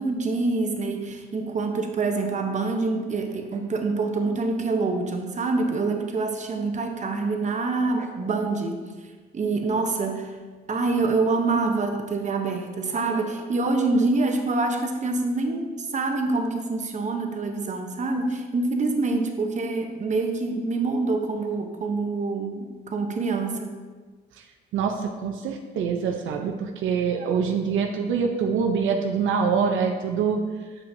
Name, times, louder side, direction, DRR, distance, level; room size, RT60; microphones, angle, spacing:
voice 1, 0.0-8.8 9.3-10.3 10.7-23.7, right 3 dB, 35° right, 4 dB, 0.8 m, -26 dB
voice 2, 24.7-30.4, right 6 dB, 80° right, 3 dB, 0.6 m, -25 dB
7.0 x 5.7 x 2.6 m, 1.4 s
cardioid pair, 90°, 20 cm